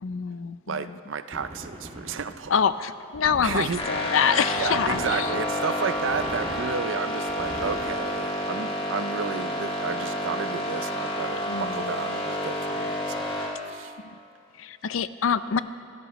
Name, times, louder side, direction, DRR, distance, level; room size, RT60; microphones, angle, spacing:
voice 1, 0.0-1.0 2.5-5.3 11.5-11.9 14.0-14.2 14.6-15.6, left 7 dB, 70° left, 14 dB, 0.5 m, -26 dB
voice 2, 0.7-2.6 3.4-3.8 4.6-13.9, right 5 dB, 65° right, 12 dB, 0.5 m, -32 dB
sound 1, 1.3-2.5 3.1-3.9 4.6-5.3 5.9-6.7 7.3-8.0, right 1 dB, 35° right, 1.9 m, -39 dB
sound 2, 3.8-13.5, equal, 30° left, 2.0 m, -29 dB
27.0 x 13.5 x 3.1 m, 2.6 s
head